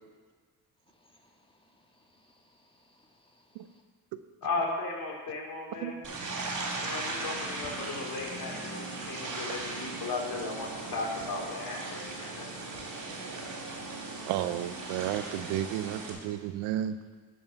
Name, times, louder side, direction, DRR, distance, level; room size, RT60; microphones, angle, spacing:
voice 1, 0.9-3.8, left 1 dB, 15° left, 1 dB, 2.0 m, -66 dB
voice 2, 4.4-6.0 6.8-12.5, left 3 dB, 55° left, -2 dB, 3.1 m, -36 dB
sound 1, 6.0-16.1, right 3 dB, 50° right, 3.2 m, -38 dB
voice 3, 14.3-17.0, right 12 dB, 85° right, 12 dB, 0.6 m, -32 dB
11.5 x 5.6 x 5.8 m, 1.5 s
supercardioid pair, 60°, 40 cm